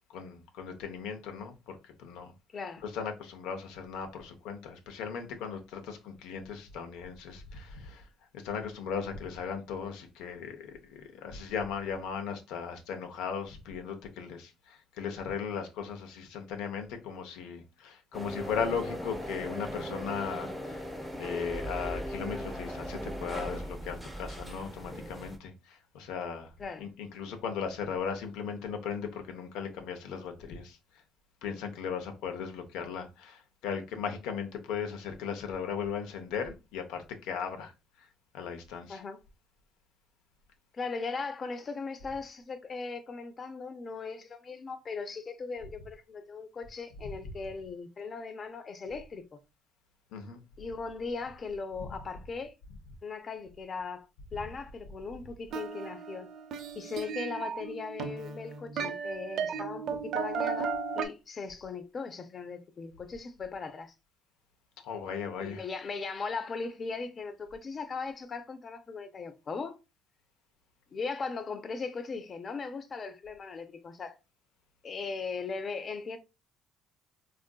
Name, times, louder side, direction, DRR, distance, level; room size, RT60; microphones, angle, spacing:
voice 1, 0.1-2.3 2.8-8.1 8.3-20.9 21.2-26.5 26.8-30.8 31.4-37.7 38.0-38.1 38.3-39.0 50.1-50.4 64.8-65.6, left 6 dB, 85° left, 0.5 m, -37 dB
voice 2, 2.5-2.8 26.6-26.9 38.9-39.2 40.7-49.4 50.6-52.5 53.0-54.1 54.3-56.3 56.7-63.9 65.4-69.8 70.9-74.2 74.8-76.2, left 4 dB, 35° left, 0.4 m, -38 dB
sound 1, 18.1-25.4, equal, 5° right, 0.6 m, -38 dB
sound 2, 55.5-61.1, right 5 dB, 65° right, 0.5 m, -35 dB
3.6 x 2.4 x 2.2 m
cardioid pair, 110°, 0 cm